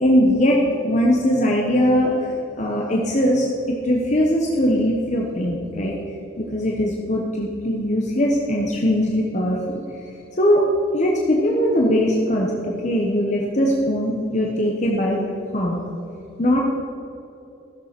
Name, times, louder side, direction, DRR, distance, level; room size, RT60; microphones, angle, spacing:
voice 1, 0.0-2.1 2.6-5.9 6.4-9.6 10.4-10.6 10.9-15.2 15.5-15.8 16.4-16.6, equal, 35° left, -2 dB, 1.1 m, -20 dB
14.5 x 6.9 x 6.0 m, 2.8 s
head